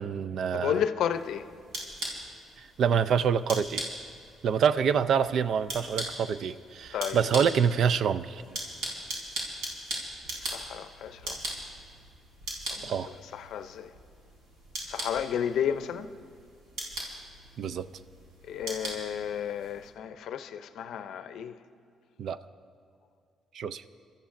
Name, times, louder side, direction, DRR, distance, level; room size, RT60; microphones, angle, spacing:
voice 1, 0.0-0.8 2.6-3.8 4.4-8.4 12.8-13.1 17.6-17.9 22.2-22.4 23.5-23.8, right 7 dB, 65° right, 0.4 m, -26 dB
voice 2, 0.5-1.5 6.9-7.4 10.4-11.4 12.7-13.0 13.3-13.9 14.8-16.1 18.4-21.6, left 9 dB, 75° left, 0.5 m, -32 dB
sound 1, 1.1-19.9, right 1 dB, 85° right, 4.0 m, -40 dB
28.5 x 13.0 x 2.6 m
cardioid pair, 90°, 0 cm